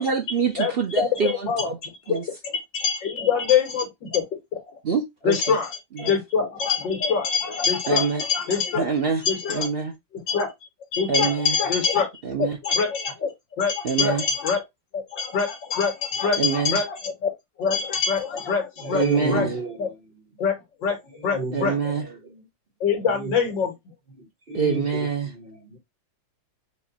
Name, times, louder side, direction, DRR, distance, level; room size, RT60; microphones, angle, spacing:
voice 1, 0.0-1.8 2.1-2.2 4.8-5.4 6.0-6.1 7.9-8.2 8.8-9.2 9.5-9.9 11.1-11.6 12.2-12.6 13.8-14.2 16.4-16.8 18.9-19.5 21.5-22.1 24.5-25.3, right 5 dB, 70° right, 0.5 m, -25 dB
voice 2, 0.6-4.2 4.5-4.6 5.2-8.9 9.2-9.7 10.1-10.5 10.9-12.1 12.4-13.3 13.6-14.6 14.9-17.3 17.6-19.5 19.8-19.9 20.4-20.6 20.8-21.0 21.2-21.8 22.8-23.7, left 6 dB, 75° left, 2.4 m, -24 dB
voice 3, 18.8-19.8 21.2-22.4 23.1-23.3 24.2-25.8, right 3 dB, 30° right, 1.4 m, -31 dB
5.3 x 2.5 x 4.0 m
omnidirectional pair, 2.0 m